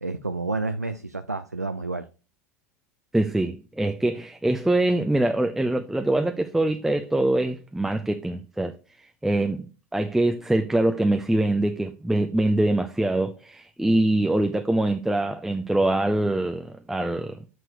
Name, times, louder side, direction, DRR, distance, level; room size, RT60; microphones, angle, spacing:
voice 1, 0.0-2.1, right 3 dB, 90° right, 0.4 m, -30 dB
voice 2, 3.1-8.7 9.2-9.7 9.9-17.4, right 1 dB, 5° right, 0.5 m, -24 dB
8.0 x 4.5 x 3.0 m
figure-of-eight pair, 75°, 8 cm